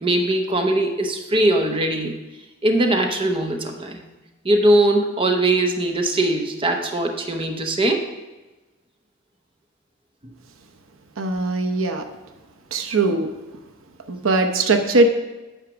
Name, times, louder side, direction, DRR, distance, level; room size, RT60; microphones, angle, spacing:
voice 1, 0.0-2.1 2.6-4.0 4.4-8.0, right 1 dB, 25° right, 3 dB, 0.8 m, -20 dB
voice 2, 11.2-12.1 12.7-13.3 14.1-15.1, right 2 dB, 80° right, 7 dB, 0.8 m, -20 dB
9.0 x 4.9 x 6.1 m, 1.1 s
head